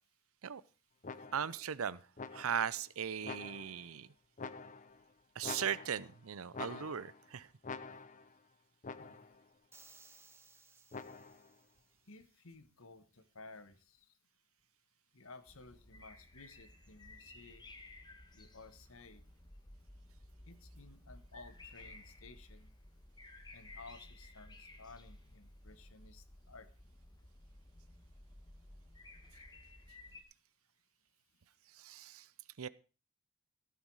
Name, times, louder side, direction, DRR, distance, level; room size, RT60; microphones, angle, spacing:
sound 1, 1.0-1.6 2.2-2.8 3.2-3.9 4.4-5.0 5.4-6.2 6.5-7.3 7.6-8.3 8.8-9.4 10.9-11.5, left 4 dB, 35° left, 0.7 m, -47 dB
voice 1, 1.3-2.0 2.3-4.1 5.4-7.5 31.7-32.3 32.6-32.7, right 8 dB, 75° right, 0.6 m, -38 dB
sound 2, 9.7-12.0, right 4 dB, 10° right, 1.1 m, -61 dB
voice 2, 12.1-14.2 15.1-17.7 18.3-19.2 20.4-22.7 23.5-26.7, left 3 dB, 70° left, 1.4 m, -56 dB
sound 3, 15.5-30.2, left 2 dB, 20° left, 1.5 m, -56 dB
16.0 x 9.4 x 4.8 m
head